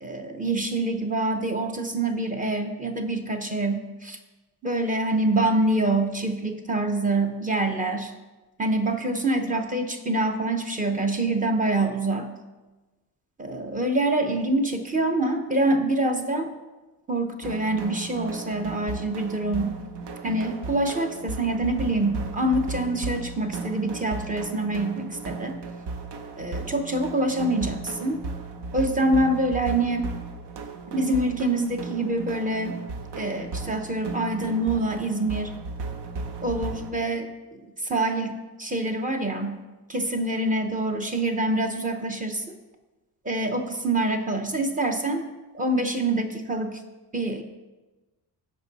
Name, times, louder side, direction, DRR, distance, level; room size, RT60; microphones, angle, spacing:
voice 1, 0.0-4.2 4.6-8.1 8.6-12.3 13.4-16.5 17.1-19.8 20.2-25.6 26.4-28.2 28.7-30.1 30.9-32.8 33.2-35.5 36.4-39.6 39.9-42.6 43.2-45.2 45.5-46.8 47.1-47.4, right 2 dB, 20° right, 5 dB, 0.7 m, -26 dB
sound 1, 17.4-36.9, right 4 dB, 70° right, 0.9 m, -35 dB
15.0 x 5.4 x 4.0 m, 1.2 s
wide cardioid pair, 175°, 41 cm